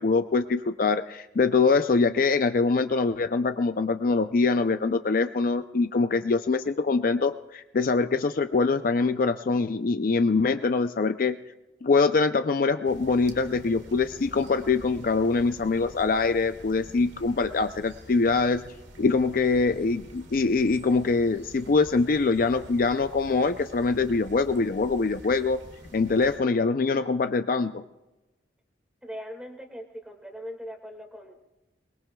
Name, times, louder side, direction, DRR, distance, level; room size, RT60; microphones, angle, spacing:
voice 1, 0.0-11.4 11.8-18.6 19.0-25.6 25.9-27.8, left 4 dB, 45° left, 9 dB, 0.4 m, -24 dB
sound 1, 12.8-26.4, equal, 80° right, 2.1 m, -47 dB
voice 2, 29.0-31.4, equal, 5° right, 2 dB, 1.9 m, -40 dB
23.0 x 21.0 x 2.3 m, 1.0 s
head